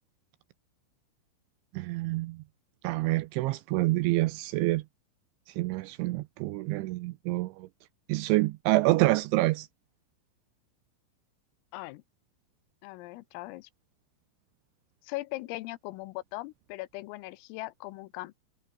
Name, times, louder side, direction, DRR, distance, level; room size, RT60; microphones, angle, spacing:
voice 1, 1.7-2.4 2.8-4.8 5.6-7.7 8.1-9.7, right 19 dB, 85° right, 2.8 m, -27 dB
voice 2, 11.7-12.0 12.8-13.7 15.0-18.3, left 20 dB, 90° left, 3.5 m, -39 dB
omnidirectional pair, 5.9 m